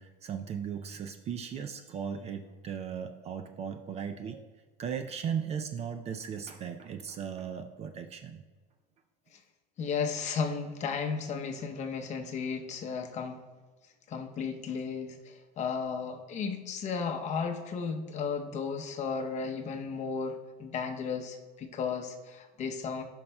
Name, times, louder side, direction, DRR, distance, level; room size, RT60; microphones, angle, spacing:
voice 1, 0.0-4.5 4.8-8.4, right 7 dB, 30° right, 7 dB, 0.4 m, -37 dB
voice 2, 9.8-13.4 14.1-23.0, left 5 dB, 35° left, 5 dB, 0.7 m, -34 dB
12.5 x 5.7 x 2.2 m, 1.3 s
supercardioid pair, 135°, 21 cm